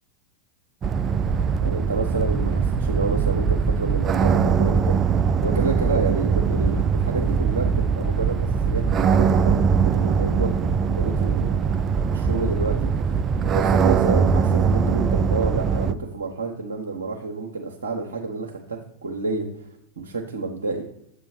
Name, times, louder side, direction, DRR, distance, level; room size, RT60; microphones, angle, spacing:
sound 1, 0.8-15.9, right 6 dB, 25° right, 0.3 m, -21 dB
voice 1, 1.6-8.4 8.6-11.7 12.1-13.2 13.5-19.5 20.0-20.8, right 3 dB, 70° right, -2 dB, 0.9 m, -29 dB
7.8 x 3.1 x 5.7 m, 0.74 s
figure-of-eight pair, 90°, 0 cm